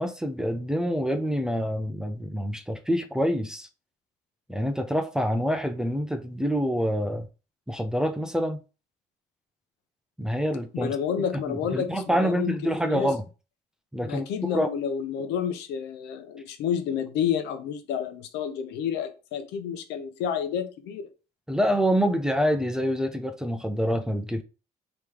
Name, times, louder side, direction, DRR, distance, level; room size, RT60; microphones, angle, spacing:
voice 1, 0.0-3.7 4.5-7.3 7.7-8.6 10.2-11.0 11.5-13.2 13.9-14.3 14.5-14.7 21.5-24.4, equal, 5° right, 0.6 m, -26 dB
voice 2, 10.7-13.1 14.0-21.1, left 8 dB, 90° left, 0.8 m, -30 dB
3.4 x 3.0 x 4.8 m
cardioid pair, 110°, 17 cm